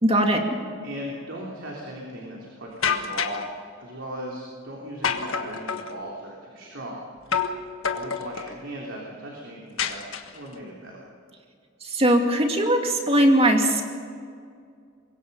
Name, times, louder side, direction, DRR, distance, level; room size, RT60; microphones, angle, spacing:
voice 1, 0.0-0.4 11.9-13.8, right 1 dB, 30° right, 3 dB, 2.4 m, -19 dB
voice 2, 0.8-3.4 3.8-7.0 7.3-7.4 7.9-11.0, right 1 dB, 65° right, -3 dB, 3.5 m, -38 dB
sound 1, 2.8-3.5 5.0-5.9 7.3-7.6 7.8-8.5 9.8-10.5, left 6 dB, 80° left, 1.5 m, -27 dB
25.0 x 22.0 x 5.6 m, 2.2 s
head